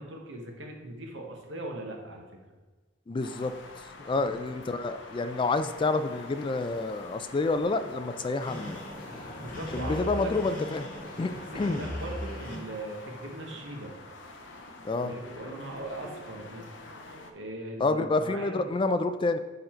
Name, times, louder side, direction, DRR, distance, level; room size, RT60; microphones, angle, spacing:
voice 1, 0.0-2.4 4.1-4.3 9.4-10.3 11.2-11.4 11.7-13.9 15.0-16.7 17.3-18.7, right 1 dB, 80° right, 1 dB, 1.2 m, -39 dB
voice 2, 3.1-3.5 4.0-8.8 9.7-10.9 11.2-11.9 14.8-15.1 17.8-19.4, left 3 dB, 25° left, 10 dB, 0.3 m, -28 dB
sound 1, 3.2-17.3, left 2 dB, 65° left, 0.6 m, -46 dB
sound 2, 8.4-12.6, left 1 dB, 45° left, 1.4 m, -39 dB
6.8 x 3.9 x 4.4 m, 1.3 s
head